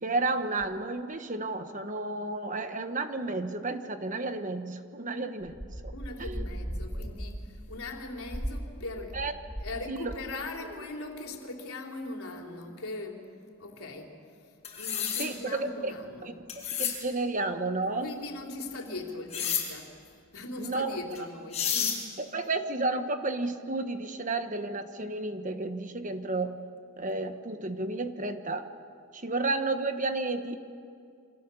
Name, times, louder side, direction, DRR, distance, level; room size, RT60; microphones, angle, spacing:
voice 1, 0.0-5.5 6.2-6.4 9.1-9.3 9.9-10.1 15.2-15.9 16.2-16.3 16.8-18.1 20.6-21.0 22.3-26.6 27.0-28.6 29.1-30.6, right 2 dB, 35° right, 8 dB, 1.3 m, -32 dB
sound 1, 5.4-9.8 10.0-10.4, equal, 5° right, 2.6 m, -37 dB
voice 2, 5.9-9.2 9.6-13.2 13.6-14.2 14.8-16.3 18.0-19.9 20.3-22.0, left 2 dB, 75° left, 1 dB, 3.7 m, -40 dB
sound 2, 14.6-15.3 16.5-17.0 19.3-19.6 21.1-21.2 21.5-22.0, left 8 dB, 30° left, 5.6 m, -30 dB
29.0 x 25.5 x 7.1 m, 2.4 s
head